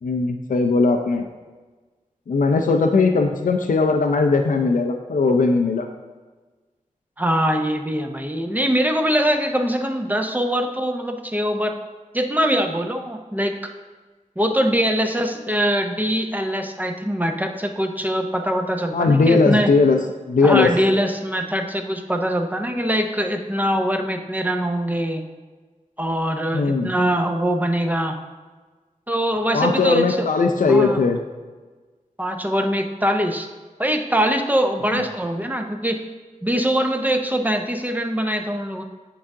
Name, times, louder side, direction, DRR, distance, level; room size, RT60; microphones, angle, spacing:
voice 1, 0.0-1.3 2.3-5.9 18.9-20.0 20.3-20.7 26.5-26.9 29.5-31.2 34.9-35.0, left 4 dB, 75° left, 4 dB, 0.5 m, -18 dB
voice 2, 7.2-11.8 12.1-13.7 14.4-19.7 20.4-25.2 26.0-28.2 29.1-30.3 30.7-31.0 32.2-33.5 33.8-36.0 36.4-38.8, equal, 10° right, 5 dB, 0.6 m, -22 dB
8.7 x 4.8 x 3.7 m, 1.3 s
wide cardioid pair, 80°, 14 cm